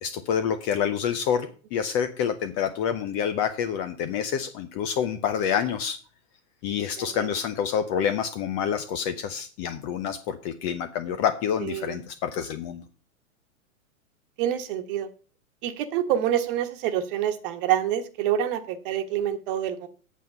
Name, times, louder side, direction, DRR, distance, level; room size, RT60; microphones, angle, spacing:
voice 1, 0.0-6.0 6.6-12.8, left 8 dB, 25° left, 9 dB, 0.5 m, -27 dB
voice 2, 7.0-7.3 11.6-12.0 14.4-15.1 15.6-19.9, right 10 dB, 40° right, 8 dB, 1.3 m, -27 dB
8.3 x 7.5 x 5.4 m, 0.40 s
hypercardioid pair, 135°, 42 cm